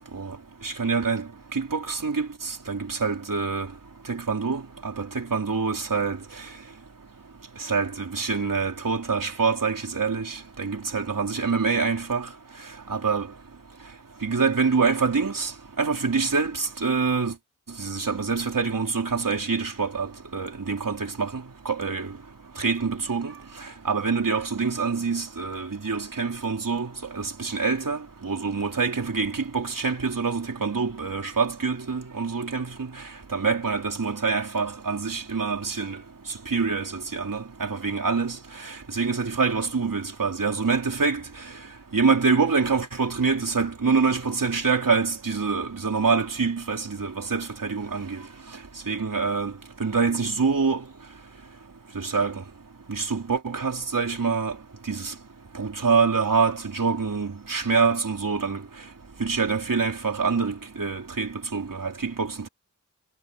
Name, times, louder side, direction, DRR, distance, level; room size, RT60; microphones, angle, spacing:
voice 1, 0.6-1.2 1.5-3.7 4.1-6.2 7.6-12.3 12.9-13.3 14.2-15.5 15.8-17.3 17.8-22.1 22.6-23.3 23.8-32.9 33.3-36.0 36.5-41.2 41.9-48.2 48.9-49.5 49.8-50.8 52.0-52.4 52.9-54.6 54.9-55.1 55.5-58.6 59.2-62.5, right 5 dB, 85° right, 3.8 m, -26 dB
wide cardioid pair, 70°, 32 cm